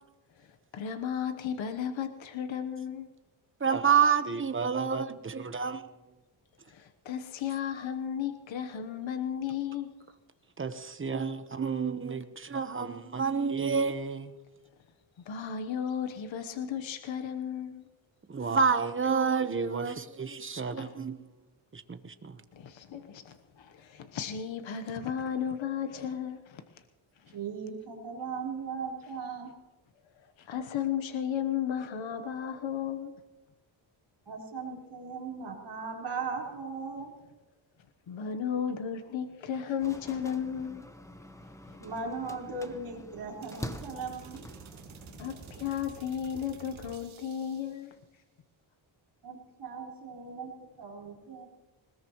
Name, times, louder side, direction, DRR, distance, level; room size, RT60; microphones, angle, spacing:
voice 1, 0.4-3.1 6.7-9.9 15.2-17.9 20.8-21.0 22.5-26.6 27.2-27.4 30.2-33.2 38.1-40.9 41.7-41.8 45.1-48.0, left 8 dB, 70° left, 1.2 m, -34 dB
voice 2, 3.6-5.8 10.6-14.3 18.3-21.2 21.7-22.4, right 6 dB, 25° right, 1.1 m, -29 dB
voice 3, 27.3-29.5 34.3-37.1 41.8-44.4 49.2-50.5 50.8-51.5, right 4 dB, 55° right, 4.6 m, -38 dB
sound 1, 39.8-45.8, left 1 dB, 5° left, 1.0 m, -46 dB
sound 2, 43.4-47.9, right 6 dB, 70° right, 2.3 m, -50 dB
20.5 x 20.5 x 3.1 m
cardioid pair, 105°, 49 cm